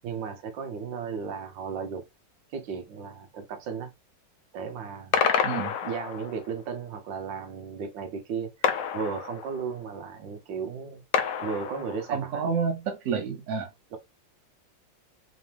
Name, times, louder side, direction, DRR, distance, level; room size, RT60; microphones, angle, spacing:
voice 1, 0.0-2.0 2.5-3.9 4.5-5.2 5.8-8.7 8.9-11.0 11.4-12.4, right 6 dB, 85° right, 1.6 m, -35 dB
sound 1, 5.1-6.5 8.6-9.8 11.1-12.3, left 7 dB, 65° left, 0.8 m, -28 dB
voice 2, 5.4-5.7 12.1-13.7, right 6 dB, 50° right, 1.0 m, -29 dB
3.8 x 2.9 x 3.3 m
omnidirectional pair, 2.0 m